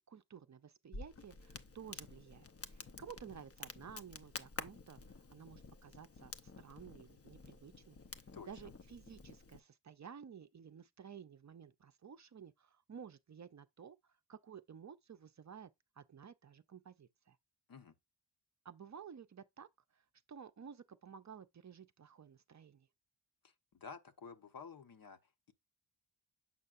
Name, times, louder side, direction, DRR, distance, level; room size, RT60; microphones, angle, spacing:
voice 1, 0.0-5.0 5.3-8.0 8.5-15.7 16.0-17.4 18.6-22.9, right 7 dB, 40° right, 0.6 m, -54 dB
Crackle, 0.9-9.6, left 4 dB, 35° left, 0.7 m, -51 dB
voice 2, 23.4-25.2, left 5 dB, 55° left, 1.0 m, -52 dB
7.5 x 5.5 x 2.5 m
wide cardioid pair, 105°, 42 cm